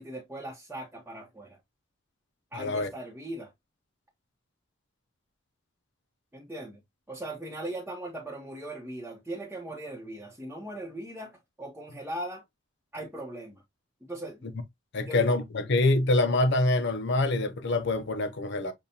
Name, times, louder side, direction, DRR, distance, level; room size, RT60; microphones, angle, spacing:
voice 1, 0.0-1.6 2.5-3.5 6.3-6.8 7.1-12.4 12.9-13.6 14.0-14.6 15.1-15.4, right 1 dB, 10° right, 0.9 m, -39 dB
voice 2, 2.5-2.9 14.9-18.7, left 2 dB, 65° left, 0.6 m, -25 dB
6.9 x 2.4 x 2.7 m
head